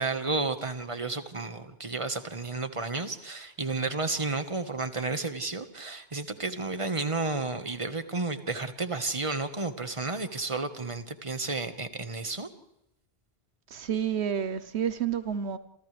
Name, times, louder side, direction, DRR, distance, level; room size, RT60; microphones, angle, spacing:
voice 1, 0.0-12.5, right 3 dB, 30° right, 1.5 m, -32 dB
voice 2, 13.7-15.6, right 8 dB, 85° right, 1.2 m, -29 dB
28.0 x 28.0 x 3.4 m
omnidirectional pair, 1.1 m